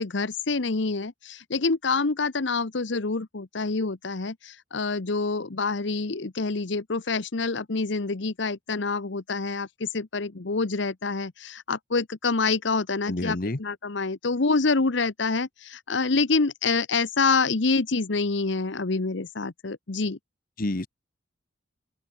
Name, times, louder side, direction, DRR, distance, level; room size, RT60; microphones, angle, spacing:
voice 1, 0.0-20.2, left 4 dB, 65° left, 1.0 m, -27 dB
voice 2, 13.1-13.6 20.6-20.9, left 2 dB, 45° left, 1.1 m, -28 dB
head